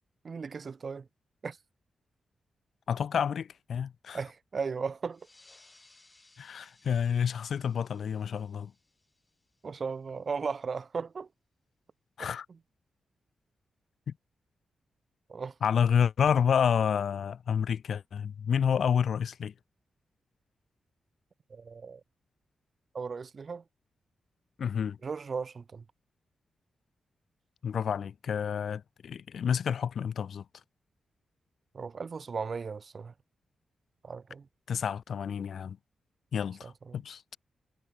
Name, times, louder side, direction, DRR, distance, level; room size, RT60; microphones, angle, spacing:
voice 1, 0.2-1.1 1.4-1.6 4.1-5.3 9.6-11.3 15.3-15.5 21.5-22.0 22.9-23.6 25.0-25.8 31.7-33.1 34.0-34.5 36.6-37.0, right 5 dB, 45° right, 1.2 m, -36 dB
voice 2, 2.9-4.2 6.4-8.7 12.2-12.5 14.1-14.2 15.6-19.5 24.6-25.0 27.6-30.4 34.7-35.8 36.3-37.2, left 7 dB, 70° left, 0.9 m, -29 dB
sound 1, 5.1-10.2, left 2 dB, 25° left, 3.8 m, -63 dB
cardioid pair, 100°, 0 cm